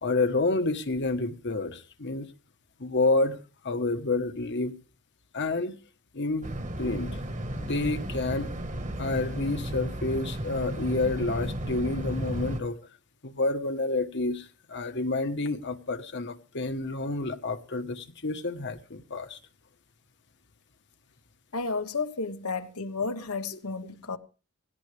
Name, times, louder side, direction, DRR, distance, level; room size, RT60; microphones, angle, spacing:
voice 1, 0.0-2.3 2.8-3.4 3.6-4.8 5.3-5.7 6.1-6.5 6.8-7.2 7.6-8.6 9.0-12.8 13.2-19.4, left 2 dB, 55° left, 1.3 m, -29 dB
sound 1, 6.4-12.6, right 1 dB, 35° right, 1.5 m, -34 dB
voice 2, 21.5-24.2, left 4 dB, 80° left, 1.4 m, -32 dB
17.5 x 17.5 x 3.4 m
head